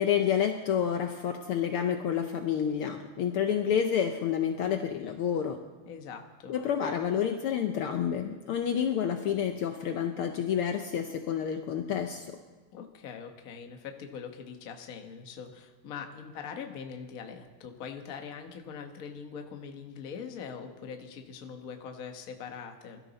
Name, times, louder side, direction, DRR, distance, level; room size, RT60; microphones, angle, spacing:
voice 1, 0.0-5.6 6.5-12.3, left 8 dB, 90° left, 6 dB, 1.2 m, -29 dB
voice 2, 5.9-6.5 12.7-23.0, left 6 dB, 60° left, 5 dB, 0.9 m, -42 dB
22.0 x 13.0 x 4.1 m, 1.3 s
omnidirectional pair, 3.4 m